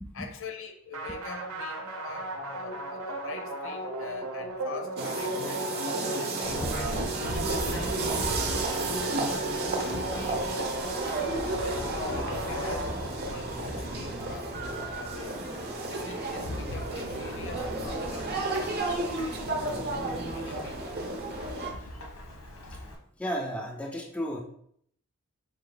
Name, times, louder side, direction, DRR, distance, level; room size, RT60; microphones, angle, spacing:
voice 1, 0.1-8.0 8.5-14.6 14.9-15.4 15.9-18.8 20.3-21.0, left 4 dB, 65° left, 0.6 m, -44 dB
sound 1, 0.9-13.5, right 1 dB, 85° right, 0.7 m, -36 dB
sound 2, 5.0-21.7, right 2 dB, 45° right, 0.7 m, -33 dB
Thunderstorm / Rain, 6.4-23.0, left 1 dB, 85° left, 1.1 m, -40 dB
voice 2, 8.3-8.6 20.4-20.6 21.5-21.7 22.7-22.8 23.2-24.4, equal, 5° left, 0.4 m, -35 dB
4.7 x 2.7 x 3.8 m
head